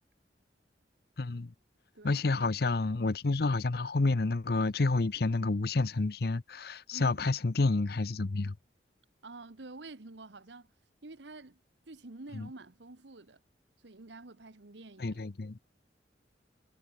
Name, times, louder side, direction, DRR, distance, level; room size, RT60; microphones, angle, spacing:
voice 1, 1.2-1.5 2.0-8.5 12.3-12.5 15.0-15.6, left 3 dB, 60° left, 0.7 m, -29 dB
voice 2, 6.9-7.2 9.2-10.7 11.0-11.6 11.9-13.4 13.8-15.2, right 2 dB, 85° right, 1.3 m, -48 dB
head